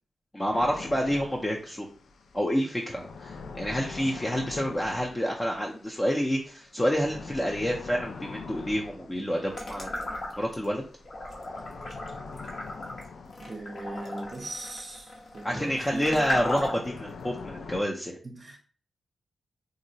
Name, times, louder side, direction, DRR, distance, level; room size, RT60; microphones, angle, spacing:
voice 1, 0.3-1.9 2.3-10.0 10.4-10.8 15.4-18.1, equal, 15° left, 0.5 m, -28 dB
sound 1, 0.5-17.8, left 4 dB, 75° left, 0.3 m, -45 dB
sound 2, 9.5-10.7 11.1-17.0, left 1 dB, 60° left, 0.9 m, -35 dB
voice 2, 13.4-16.3 18.2-18.6, right 2 dB, 40° right, 0.6 m, -39 dB
3.7 x 2.0 x 2.6 m
wide cardioid pair, 90°, 0 cm